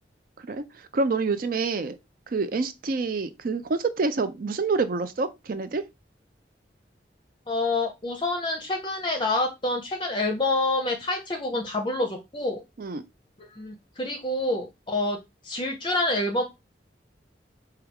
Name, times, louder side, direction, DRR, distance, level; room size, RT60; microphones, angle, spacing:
voice 1, 0.9-2.0 2.3-5.8 12.8-13.0, right 4 dB, 50° right, 0.4 m, -27 dB
voice 2, 7.5-12.6 13.4-15.2 15.4-16.4, left 2 dB, 25° left, 0.6 m, -27 dB
4.5 x 2.3 x 3.4 m
head